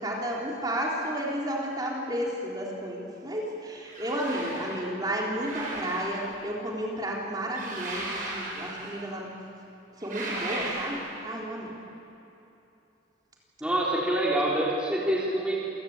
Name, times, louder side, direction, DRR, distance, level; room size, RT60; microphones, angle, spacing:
voice 1, 0.0-9.3 10.0-11.7, right 1 dB, 20° right, -3 dB, 3.8 m, -32 dB
sound 1, 3.9-4.8 5.4-6.5 7.5-9.1 10.0-11.3, right 2 dB, 45° right, 7.4 m, -36 dB
voice 2, 13.6-15.6, right 1 dB, 5° right, -6 dB, 3.6 m, -26 dB
28.0 x 17.5 x 8.6 m, 2.9 s
head